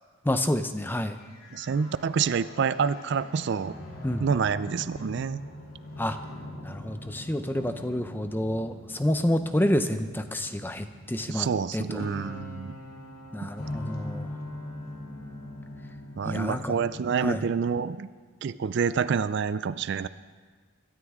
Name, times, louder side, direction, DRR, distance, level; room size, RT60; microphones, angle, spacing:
voice 1, 0.2-1.2 4.0-4.3 6.0-6.2 6.6-11.5 11.7-12.1 13.3-14.3 16.2-16.7 17.2-17.5, left 1 dB, 10° left, 9 dB, 0.6 m, -28 dB
sound 1, 1.2-17.6, left 1 dB, 75° left, 2.9 m, -42 dB
voice 2, 1.5-3.7 4.2-5.4 11.3-12.7 13.4-13.5 16.2-18.1 18.4-20.1, right 6 dB, 55° right, 15 dB, 0.3 m, -27 dB
22.0 x 12.5 x 3.6 m, 1.5 s
head